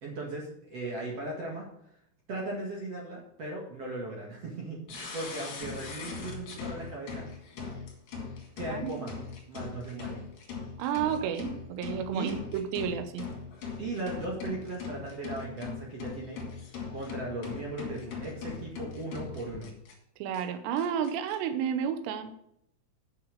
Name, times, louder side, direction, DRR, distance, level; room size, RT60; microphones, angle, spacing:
voice 1, 0.0-1.7 2.3-7.3 8.6-9.1 9.5-10.2 12.1-12.3 13.8-16.4 16.9-19.7, right 2 dB, 60° right, -2 dB, 1.7 m, -37 dB
sound 1, 4.9-19.9 20.3-20.4 20.8-21.4, left 5 dB, 55° left, 3.5 m, -40 dB
voice 2, 8.7-9.0 10.8-13.3 20.2-22.3, right 8 dB, 75° right, 9 dB, 2.6 m, -31 dB
9.2 x 6.9 x 6.5 m, 0.75 s
omnidirectional pair, 5.7 m